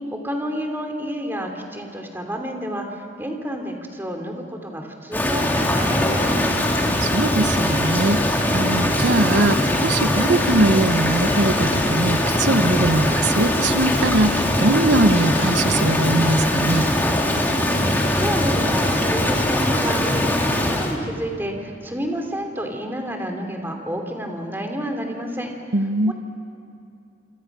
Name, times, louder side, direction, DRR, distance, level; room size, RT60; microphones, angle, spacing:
voice 1, 0.1-6.6 17.9-25.5 26.1-26.2, equal, 10° right, 3 dB, 2.9 m, -30 dB
Rain, 5.1-21.0, left 1 dB, 10° left, 2.4 m, -21 dB
voice 2, 7.0-8.2 8.5-16.9 25.7-26.1, right 2 dB, 85° right, 11 dB, 1.0 m, -21 dB
27.5 x 26.5 x 6.1 m, 2.6 s
head